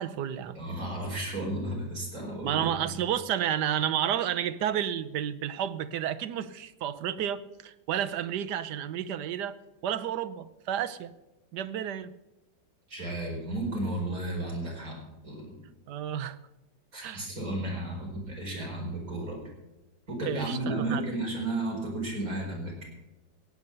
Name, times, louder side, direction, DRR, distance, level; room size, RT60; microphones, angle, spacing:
voice 1, 0.0-0.6 2.4-11.1 11.5-12.1 15.9-16.4 17.0-17.3 20.2-21.2, right 10 dB, 70° right, 1.2 m, -31 dB
voice 2, 0.5-2.9 12.9-15.5 16.9-19.4 20.1-22.8, right 1 dB, 45° right, 5.1 m, -33 dB
17.0 x 8.5 x 6.7 m
omnidirectional pair, 2.0 m